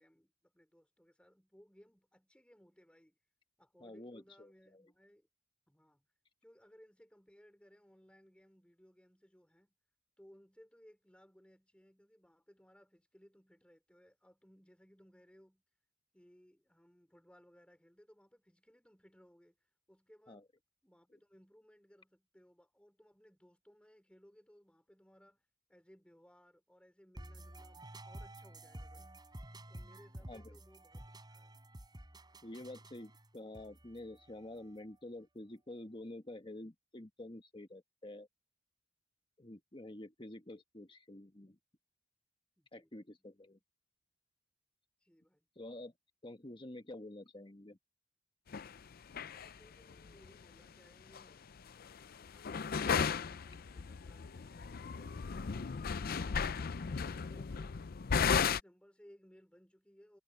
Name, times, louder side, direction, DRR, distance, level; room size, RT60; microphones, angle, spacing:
voice 1, 0.0-3.2 3.6-5.3 5.7-6.0 6.4-9.7 10.2-15.6 16.1-20.5 20.8-29.2 29.7-31.6 42.6-42.9 43.2-43.6 45.0-45.5 49.3-51.5 52.3-55.8 58.3-60.2, equal, 5° left, 3.4 m, -64 dB
voice 2, 3.8-4.8 20.3-20.4 30.2-30.6 32.4-38.3 39.4-41.6 42.7-43.6 45.5-45.9 46.2-47.8, left 1 dB, 25° left, 1.6 m, -49 dB
sound 1, 27.1-35.0, right 1 dB, 25° right, 4.1 m, -52 dB
sound 2, 48.5-48.7 49.1-49.5 49.9-50.3 51.1-51.2 51.9-52.0 52.3-58.6, left 6 dB, 50° left, 0.5 m, -35 dB
head